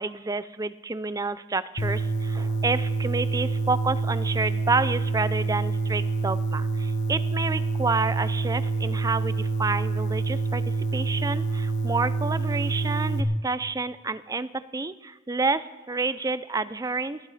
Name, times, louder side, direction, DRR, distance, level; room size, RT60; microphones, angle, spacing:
voice 1, 0.0-17.2, right 3 dB, 15° right, 14 dB, 0.4 m, -29 dB
sound 1, 1.8-13.2, right 4 dB, 55° left, 1.4 m, -27 dB
29.0 x 11.0 x 4.2 m, 1.2 s
head